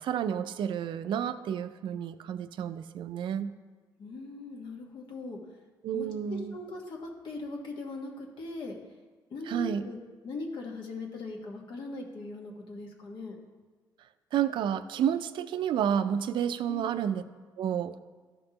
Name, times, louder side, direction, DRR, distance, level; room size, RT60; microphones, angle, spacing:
voice 1, 0.0-3.5 5.8-6.5 9.5-9.9 14.3-17.2 17.6-18.0, right 9 dB, 75° right, 12 dB, 0.4 m, -30 dB
voice 2, 4.0-5.4 5.9-8.7 9.3-10.0 10.2-13.3 16.7-16.9, left 3 dB, 75° left, 1 dB, 1.4 m, -40 dB
12.5 x 5.4 x 2.9 m, 1.4 s
cardioid pair, 110°, 8 cm